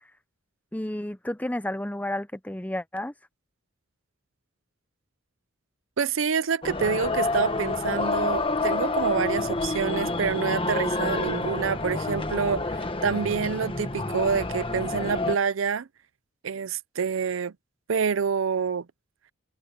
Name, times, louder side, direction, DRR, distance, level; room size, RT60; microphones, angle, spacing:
voice 1, 0.7-3.1, left 1 dB, 5° left, 0.6 m, -31 dB
voice 2, 6.0-15.9 16.4-17.5 17.9-18.9, right 6 dB, 70° right, 0.5 m, -27 dB
sound 1, 6.6-15.4, left 2 dB, 25° left, 1.2 m, -28 dB
head